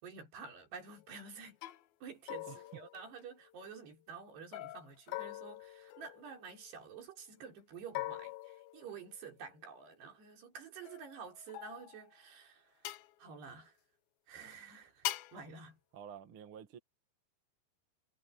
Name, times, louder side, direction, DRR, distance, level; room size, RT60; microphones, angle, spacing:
voice 1, 0.0-1.6 2.0-13.8 14.3-15.8, right 6 dB, 85° right, 6.5 m, -50 dB
sound 1, 0.9-1.2 1.6-1.8 2.3-3.6 4.5-6.7 7.9-9.4 10.9-12.1 12.8-13.1 15.0-15.4, left 16 dB, 75° left, 2.7 m, -43 dB
voice 2, 15.9-16.8, right 8 dB, 45° right, 2.0 m, -50 dB
omnidirectional pair, 4.6 m